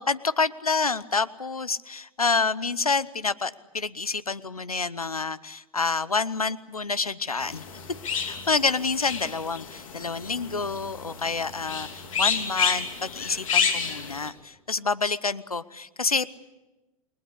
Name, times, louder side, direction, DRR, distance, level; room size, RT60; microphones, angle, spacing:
voice 1, 0.0-7.6 8.3-16.3, left 4 dB, 90° left, 17 dB, 0.9 m, -28 dB
sound 1, 7.4-14.3, left 6 dB, 65° left, 3.2 m, -30 dB
29.0 x 21.5 x 8.2 m, 1.1 s
figure-of-eight pair, 95°, 18 cm